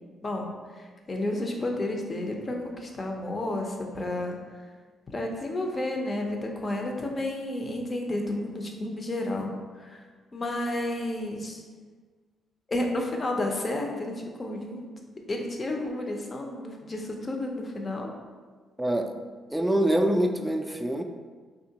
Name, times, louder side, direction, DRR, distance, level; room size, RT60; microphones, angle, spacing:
voice 1, 0.8-4.4 5.1-9.5 9.8-10.0 10.3-11.6 12.7-14.9 15.3-18.1, left 1 dB, 35° left, 2 dB, 0.6 m, -31 dB
voice 2, 18.8-19.2 19.5-21.0, right 1 dB, 10° right, 5 dB, 0.3 m, -25 dB
3.6 x 2.8 x 2.8 m, 1.5 s
cardioid pair, 80°, 0 cm